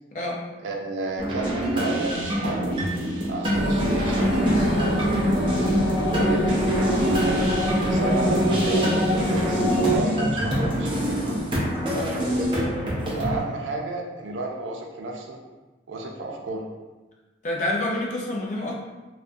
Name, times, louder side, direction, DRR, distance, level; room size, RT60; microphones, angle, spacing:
voice 1, 0.6-2.9 3.3-5.4 6.1-11.4 13.2-15.4 15.9-16.6, right 2 dB, 90° right, 0 dB, 0.4 m, -31 dB
sound 1, 1.2-13.4, equal, 25° right, 0.4 m, -26 dB
sound 2, 3.5-10.0, equal, 85° left, 1.0 m, -24 dB
voice 2, 11.9-12.2 17.4-18.8, left 1 dB, 40° left, -1 dB, 0.4 m, -28 dB
2.3 x 2.1 x 2.5 m, 1.2 s
head